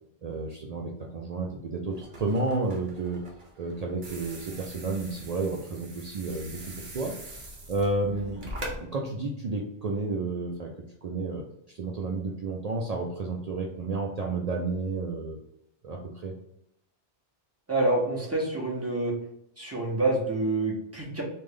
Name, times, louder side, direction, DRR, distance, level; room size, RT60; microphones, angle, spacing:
voice 1, 0.2-3.2 3.6-8.5 8.8-10.7 11.0-11.4 11.8-15.4 15.8-16.3, right 3 dB, 75° right, 0 dB, 0.3 m, -31 dB
sound 1, 1.9-8.8, right 1 dB, 45° right, 0.9 m, -43 dB
voice 2, 17.7-19.1 19.6-21.2, right 2 dB, 15° right, -3 dB, 0.7 m, -27 dB
3.2 x 2.5 x 3.6 m, 0.76 s
omnidirectional pair, 1.2 m